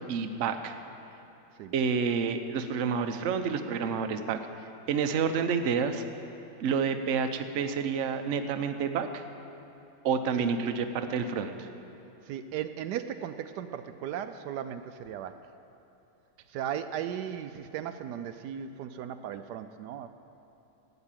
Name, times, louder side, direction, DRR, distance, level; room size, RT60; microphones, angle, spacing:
voice 1, 0.1-0.8 1.7-4.4 4.9-6.0 6.6-9.2 10.0-11.7, right 6 dB, 55° right, 7 dB, 0.9 m, -29 dB
voice 2, 12.2-15.5 16.5-20.1, right 9 dB, 75° right, 9 dB, 1.1 m, -36 dB
12.5 x 8.9 x 8.8 m, 3.0 s
omnidirectional pair, 1.8 m